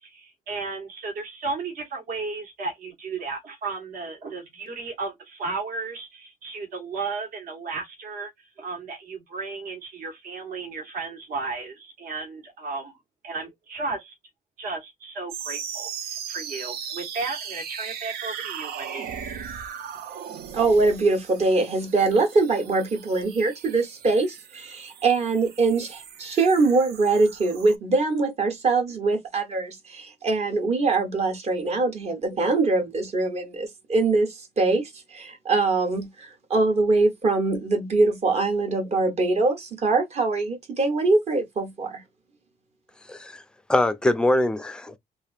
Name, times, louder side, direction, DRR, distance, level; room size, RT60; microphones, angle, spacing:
voice 1, 0.0-13.0 13.2-14.2 14.6-19.1, right 3 dB, 65° right, 1.3 m, -34 dB
sound 1, 15.3-27.8, right 8 dB, 90° right, 0.6 m, -38 dB
voice 2, 20.5-42.0, right 3 dB, 45° right, 1.0 m, -23 dB
voice 3, 43.1-43.4 43.7-45.0, left 1 dB, 5° left, 0.4 m, -23 dB
3.3 x 2.5 x 2.4 m
cardioid pair, 150°, 16 cm